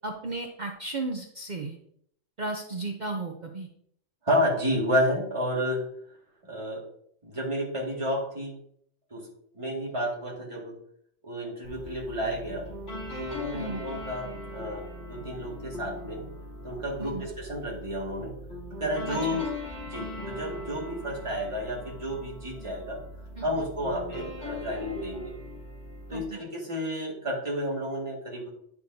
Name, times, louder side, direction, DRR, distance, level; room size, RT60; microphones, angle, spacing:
voice 1, 0.0-1.8 2.4-3.7 13.5-13.8 17.0-17.3 19.1-19.4 23.4-23.5 26.1-26.4, right 2 dB, 45° right, 3 dB, 0.8 m, -34 dB
voice 2, 4.2-5.8 6.4-6.8 7.2-8.6 9.1-9.3 9.6-10.8 11.2-12.7 13.2-16.3 16.6-18.3 18.8-19.5 19.8-23.0 23.4-25.4 26.1-28.5, equal, 25° right, -2 dB, 2.0 m, -31 dB
sound 1, 11.6-26.3, left 1 dB, 70° left, 3.2 m, -40 dB
9.8 x 6.9 x 2.7 m, 0.67 s
omnidirectional pair, 1.2 m